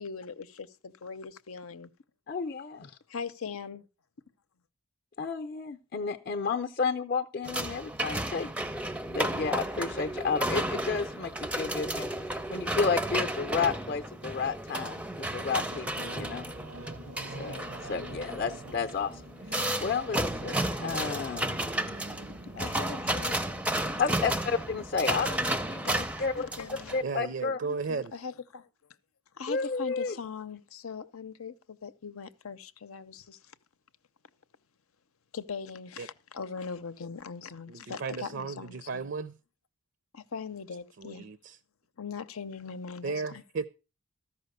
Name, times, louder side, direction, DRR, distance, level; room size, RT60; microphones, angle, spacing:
voice 1, 0.0-1.9 3.1-3.9 22.6-24.0 25.8-26.9 27.6-28.7 29.3-33.4 35.3-39.0 40.1-41.2 42.0-43.4, left 5 dB, 90° left, 0.8 m, -41 dB
voice 2, 2.3-2.9 5.2-8.5 9.1-12.1 12.5-16.5 17.3-19.2 19.8-21.7 22.5-22.6 24.0-26.5 26.9-27.6 29.5-30.2, left 5 dB, 45° left, 0.6 m, -32 dB
sound 1, 7.4-27.0, right 1 dB, 5° right, 0.5 m, -33 dB
Singing / Musical instrument, 15.0-25.1, right 1 dB, 90° right, 0.8 m, -46 dB
voice 3, 27.0-28.1 36.0-36.1 37.7-39.4 41.0-41.6 43.0-43.7, right 4 dB, 55° right, 0.5 m, -35 dB
13.5 x 5.6 x 6.6 m
head